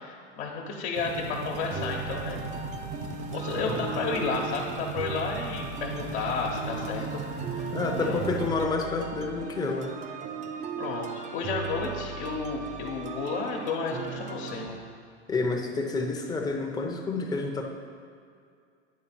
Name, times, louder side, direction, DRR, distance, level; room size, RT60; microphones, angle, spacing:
voice 1, 0.0-2.4 3.3-8.2 10.8-14.8, left 4 dB, 65° left, -1 dB, 1.1 m, -32 dB
sound 1, 0.9-8.5, right 4 dB, 90° right, 1.2 m, -37 dB
sound 2, 1.7-14.7, right 5 dB, 20° right, 0.5 m, -37 dB
voice 2, 7.7-10.0 15.3-17.6, left 3 dB, 10° left, 1 dB, 0.7 m, -29 dB
9.6 x 3.4 x 6.0 m, 2.3 s
supercardioid pair, 125°, 34 cm